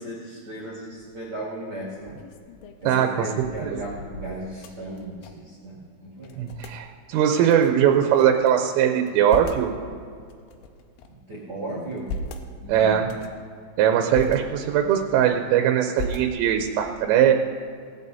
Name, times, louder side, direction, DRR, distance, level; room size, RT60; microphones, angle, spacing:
voice 1, 0.0-2.2 2.8-6.5 11.1-12.2 12.6-13.0, right 1 dB, 45° right, -4 dB, 1.7 m, -36 dB
sound 1, 0.9-1.3 1.8-5.6 5.8-5.9 6.2-6.8 7.5-8.5 9.0-9.7 10.3-11.2 11.8-12.5 13.0-13.5 13.9-14.4 14.9-15.5 15.9-16.7, left 2 dB, 85° left, 3.1 m, -38 dB
voice 2, 2.9-3.3 3.6-3.8 6.4-9.8 12.7-13.1 13.8-17.3, right 9 dB, 85° right, 4 dB, 3.3 m, -20 dB
18.0 x 15.0 x 2.7 m, 2.2 s
omnidirectional pair, 5.8 m